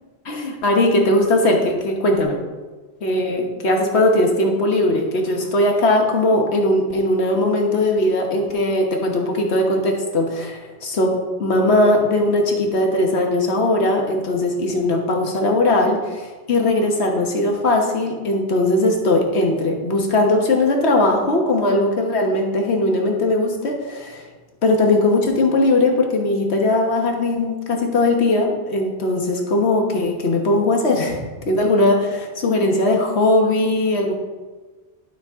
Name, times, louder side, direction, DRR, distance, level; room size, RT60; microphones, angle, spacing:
voice 1, 0.2-2.4 3.0-11.1 11.4-24.2 24.6-31.2 31.5-34.1, left 2 dB, 75° left, 1 dB, 1.6 m, -19 dB
12.0 x 6.0 x 3.6 m, 1.3 s
omnidirectional pair, 1.1 m